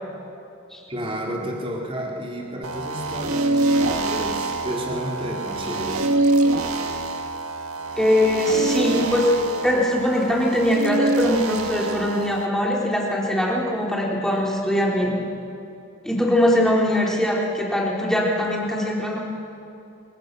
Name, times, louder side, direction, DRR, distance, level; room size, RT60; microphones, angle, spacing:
voice 1, 0.9-6.1, equal, 25° right, -1 dB, 3.5 m, -31 dB
sound 1, 2.6-12.5, right 2 dB, 85° right, 1.7 m, -25 dB
voice 2, 8.0-9.3 9.6-15.2 16.1-19.2, left 1 dB, ahead, -3 dB, 3.6 m, -21 dB
26.5 x 24.0 x 6.8 m, 2.7 s
head